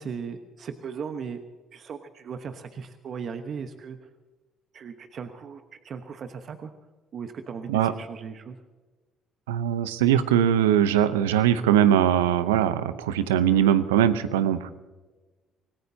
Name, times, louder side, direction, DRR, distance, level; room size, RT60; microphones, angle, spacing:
voice 1, 0.0-1.4 1.7-4.0 4.7-6.7 7.1-8.6, right 6 dB, 55° right, 7 dB, 1.1 m, -37 dB
voice 2, 9.5-14.7, right 10 dB, 85° right, 13 dB, 0.8 m, -21 dB
25.5 x 18.5 x 2.8 m, 1.3 s
hypercardioid pair, 55°, 0 cm